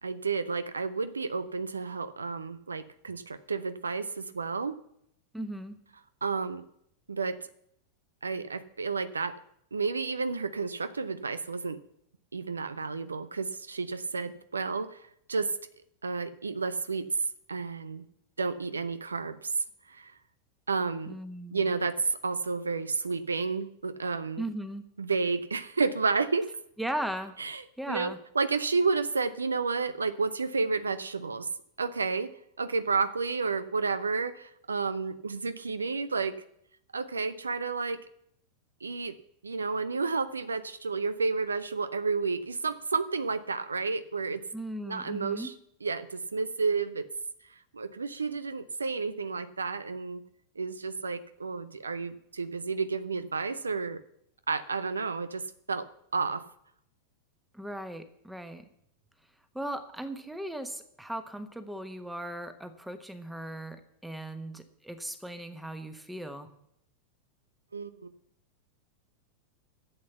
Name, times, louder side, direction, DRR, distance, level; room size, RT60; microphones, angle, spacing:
voice 1, 0.0-4.8 6.2-6.7 7.1-7.4 8.2-9.3 9.7-11.8 12.3-15.0 15.3-15.6 16.0-17.1 17.5-18.1 18.4-20.1 20.7-21.1 21.5-24.4 25.0-26.6 27.4-31.5 31.8-36.4 36.9-38.0 38.8-39.2 39.4-44.4 44.9-45.5 45.8-47.1 47.7-50.2 50.6-54.0 54.5-56.4 67.7-68.1, right 4 dB, 75° right, 14 dB, 0.6 m, -31 dB
voice 2, 5.3-5.8 21.1-21.6 24.4-24.8 26.8-27.3 27.8-28.2 44.5-45.5 57.5-58.6 59.5-66.5, right 1 dB, 5° right, 9 dB, 1.3 m, -37 dB
12.0 x 8.0 x 7.0 m, 0.73 s
figure-of-eight pair, 90°, 0 cm